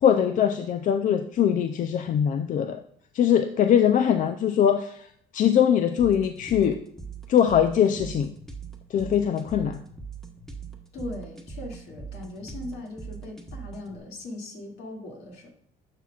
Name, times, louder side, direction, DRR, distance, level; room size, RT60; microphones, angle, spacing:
voice 1, 0.0-2.8 3.1-5.1 5.3-6.8 7.3-8.3 8.9-9.8, left 9 dB, 50° left, 8 dB, 0.5 m, -22 dB
sound 1, 6.0-14.0, right 5 dB, ahead, 1.2 m, -41 dB
voice 2, 10.9-15.5, left 2 dB, 75° left, 0 dB, 2.4 m, -39 dB
11.0 x 5.9 x 2.4 m, 0.63 s
cardioid pair, 110°, 17 cm